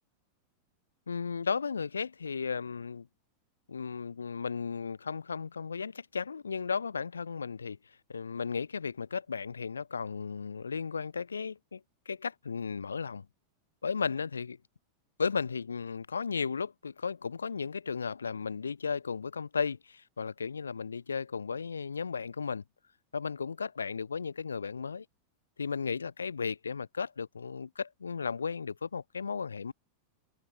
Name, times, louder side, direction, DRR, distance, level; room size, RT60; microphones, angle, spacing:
voice 1, 1.1-3.1 3.7-7.8 8.1-13.3 13.8-14.6 15.2-22.6 23.1-25.1 25.6-29.7, left 5 dB, 75° left, 0.3 m, -35 dB
figure-of-eight pair, 90°, 0 cm